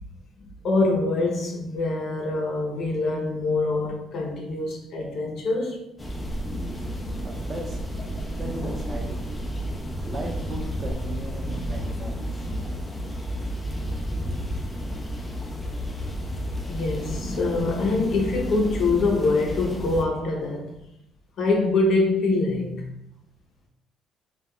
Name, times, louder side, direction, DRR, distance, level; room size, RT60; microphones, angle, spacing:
voice 1, 0.4-5.8 9.8-9.9 10.9-11.0 14.3-14.4 16.7-20.7 21.4-22.9, left 3 dB, 60° left, 0.6 m, -24 dB
sound 1, 6.0-20.1, equal, 15° left, 0.4 m, -31 dB
voice 2, 7.2-7.8 8.3-9.3 10.0-12.5, right 2 dB, 35° right, 0.6 m, -36 dB
2.3 x 2.1 x 3.5 m
cardioid pair, 110°, 0 cm